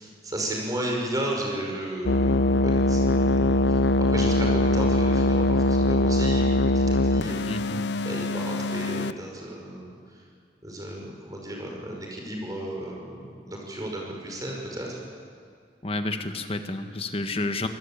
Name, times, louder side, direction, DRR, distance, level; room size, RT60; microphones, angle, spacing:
voice 1, 0.0-7.5 8.0-9.9 10.6-15.0, right 1 dB, 20° right, -1 dB, 5.6 m, -34 dB
sound 1, 2.1-9.1, left 2 dB, 80° left, 0.7 m, -22 dB
voice 2, 7.5-7.8 15.8-17.7, left 2 dB, 35° left, 7 dB, 1.6 m, -30 dB
25.0 x 19.5 x 9.0 m, 2.2 s
head